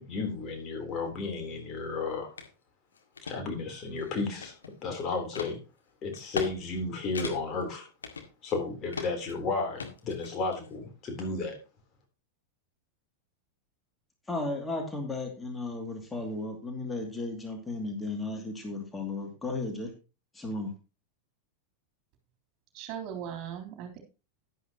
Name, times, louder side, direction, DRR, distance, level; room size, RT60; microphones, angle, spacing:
voice 1, 0.1-2.3 3.2-4.5 4.8-5.6 6.0-7.9 8.4-11.6, left 3 dB, 30° left, 3 dB, 3.6 m, -33 dB
sound 1, 2.4-2.5 3.0-3.4 3.9-4.8 5.4-5.5 6.1-6.5 6.8-6.9 7.2-7.6 8.0-8.6 8.9-9.3 9.8-10.6, left 5 dB, 70° left, 2.0 m, -37 dB
voice 2, 14.3-19.9 20.3-20.7, left 2 dB, 10° left, 2 dB, 2.5 m, -34 dB
voice 3, 22.7-24.0, right 8 dB, 40° right, 3 dB, 3.5 m, -38 dB
11.0 x 11.0 x 2.9 m, 0.31 s
figure-of-eight pair, 90°, 0 cm